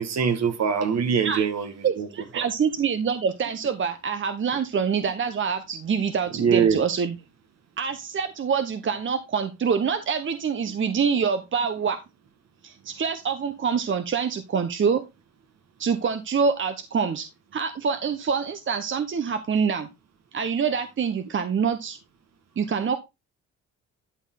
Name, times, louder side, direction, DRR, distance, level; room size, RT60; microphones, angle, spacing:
voice 1, 0.0-2.1 6.4-6.8, right 7 dB, 60° right, 1.8 m, -23 dB
voice 2, 1.8-7.2 7.8-12.0 12.6-15.0 15.8-17.3 17.5-19.9 20.3-22.0 22.6-23.0, right 6 dB, 40° right, 1.0 m, -25 dB
12.0 x 4.5 x 3.9 m
cardioid pair, 90°, 30 cm